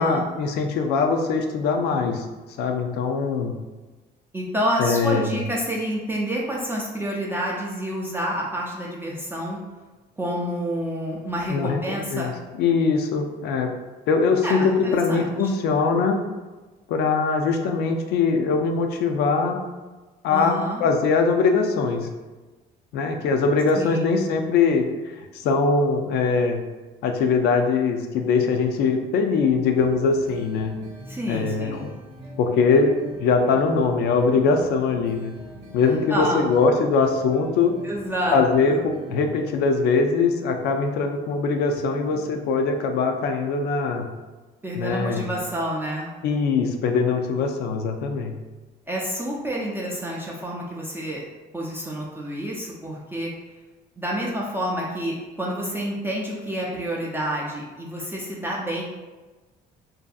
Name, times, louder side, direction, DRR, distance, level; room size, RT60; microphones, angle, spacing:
voice 1, 0.0-2.2 2.6-3.5 4.8-5.4 11.5-12.3 12.6-13.7 14.1-16.2 16.9-19.6 20.2-22.1 22.9-24.9 25.4-26.6 27.0-30.7 31.3-31.9 32.4-32.9 33.2-35.3 35.7-37.7 38.3-44.1 44.8-45.3 46.2-48.4, left 4 dB, 75° left, 4 dB, 0.4 m, -22 dB
voice 2, 4.3-9.6 10.2-12.3 14.4-15.3 20.3-20.8 23.7-24.1 31.1-31.8 36.1-36.5 37.8-38.8 44.6-46.1 48.9-51.2 51.5-53.3 54.0-58.8, equal, 15° right, -4 dB, 0.4 m, -28 dB
sound 1, 29.8-39.4 41.8-42.5, right 1 dB, 35° right, 0.8 m, -42 dB
2.6 x 2.5 x 2.3 m, 1.2 s
cardioid pair, 110°, 17 cm